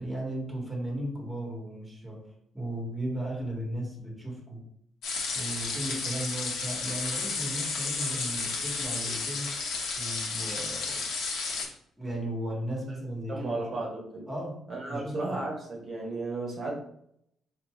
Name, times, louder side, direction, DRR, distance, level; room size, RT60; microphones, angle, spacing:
voice 1, 0.0-2.3 2.5-4.7 5.3-9.5 9.9-11.1 12.0-13.8 14.3-14.6 14.9-15.4, right 1 dB, 10° right, -1 dB, 1.3 m, -36 dB
sound 1, 5.0-11.7, left 4 dB, 85° left, 0.9 m, -32 dB
voice 2, 13.3-14.3 14.7-16.8, right 2 dB, 50° right, -2 dB, 1.1 m, -34 dB
4.1 x 2.7 x 3.4 m, 0.72 s
cardioid pair, 90°, 0 cm